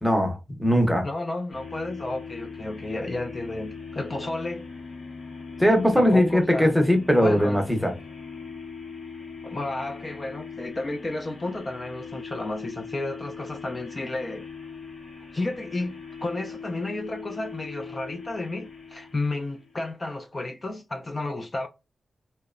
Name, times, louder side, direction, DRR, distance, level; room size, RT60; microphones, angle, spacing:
voice 1, 0.0-1.1 5.6-7.9, equal, ahead, 0.6 m, -20 dB
voice 2, 1.0-4.7 6.0-6.8 7.2-8.0 9.4-14.4 15.3-21.7, left 2 dB, 30° left, 0.3 m, -32 dB
sound 1, 1.5-19.8, left 5 dB, 55° left, 0.8 m, -40 dB
2.8 x 2.0 x 2.3 m
wide cardioid pair, 115°, 0 cm